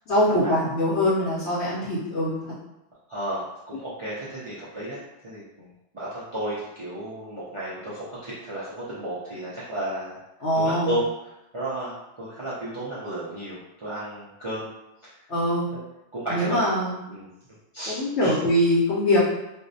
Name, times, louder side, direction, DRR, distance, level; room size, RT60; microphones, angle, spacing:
voice 1, 0.1-2.3 10.4-10.9 15.3-15.7 16.3-16.9 17.9-19.2, left 1 dB, 70° left, -7 dB, 0.8 m, -22 dB
voice 2, 3.1-5.0 5.2-10.2 10.5-14.7 15.0-15.1 16.1-16.7 17.1-17.3 17.7-18.4, right 1 dB, 45° right, -10 dB, 0.4 m, -33 dB
2.5 x 2.0 x 2.5 m, 0.91 s
omnidirectional pair, 1.2 m